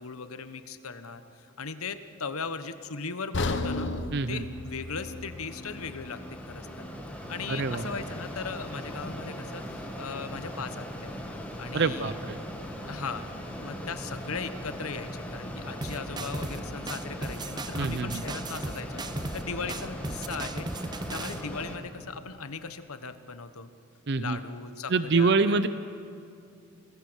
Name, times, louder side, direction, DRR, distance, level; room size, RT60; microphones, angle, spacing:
voice 1, 0.0-3.9 4.3-6.7 7.3-11.2 11.6-12.1 12.8-20.7 21.1-23.7 24.2-25.7, left 5 dB, 80° left, 11 dB, 1.2 m, -38 dB
sound 1, 3.3-7.4 7.8-7.9 8.5-8.6, left 2 dB, 55° left, 1.2 m, -35 dB
Mechanisms, 4.1-21.8, equal, 5° left, 2.1 m, -39 dB
voice 2, 4.1-4.4 7.5-7.9 11.7-12.4 17.7-18.2 24.1-24.4 24.9-25.7, right 4 dB, 50° right, 12 dB, 0.6 m, -26 dB
sound 2, 15.8-16.6 16.9-19.4 19.7-21.4, right 2 dB, 20° right, 0.7 m, -36 dB
29.5 x 19.5 x 6.3 m, 2.4 s
head